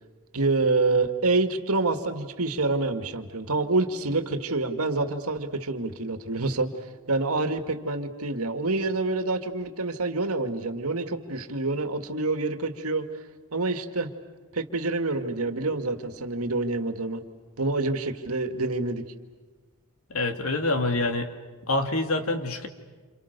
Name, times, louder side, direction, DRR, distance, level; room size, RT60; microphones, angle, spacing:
voice 1, 0.3-6.7 7.1-13.1 13.5-14.1 14.5-17.2 17.6-19.0, right 3 dB, 85° right, 7 dB, 2.1 m, -27 dB
voice 2, 20.1-21.3 21.7-22.7, left 2 dB, 75° left, 6 dB, 2.5 m, -26 dB
28.5 x 28.5 x 6.8 m, 1.4 s
head